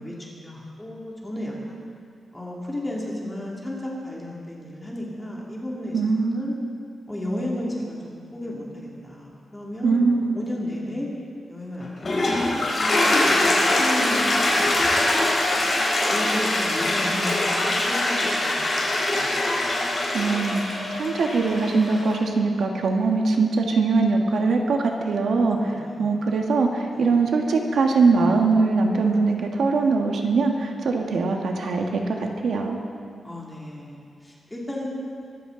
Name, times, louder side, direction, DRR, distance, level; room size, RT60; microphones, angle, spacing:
voice 1, 0.0-1.8 2.3-6.5 7.1-8.0 8.3-11.1 11.5-14.8 15.2-15.8 16.1-18.8 19.1-19.3 19.6-19.8 25.6-26.3 26.9-27.1 33.2-34.9, left 1 dB, 10° left, -4 dB, 2.6 m, -33 dB
voice 2, 5.9-6.5 9.8-10.3 20.1-32.8, right 4 dB, 70° right, 2 dB, 1.7 m, -22 dB
Toilet flush, 11.8-22.2, left 1 dB, 35° left, 4.0 m, -23 dB
24.0 x 14.5 x 4.0 m, 2.4 s
wide cardioid pair, 160°, 0 cm